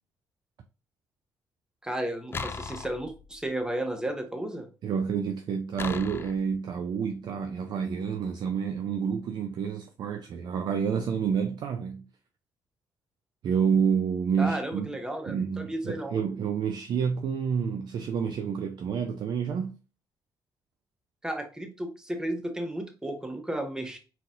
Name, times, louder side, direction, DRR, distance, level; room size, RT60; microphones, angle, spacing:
voice 1, 1.8-4.7 14.4-16.2 21.2-24.0, right 1 dB, 10° right, 1.1 m, -33 dB
sound 1, 2.3-3.5 5.8-6.6, left 4 dB, 30° left, 0.4 m, -37 dB
voice 2, 4.8-12.1 13.4-14.9 15.3-19.7, right 6 dB, 65° right, 0.5 m, -29 dB
4.1 x 4.0 x 2.5 m
cardioid pair, 75°, 8 cm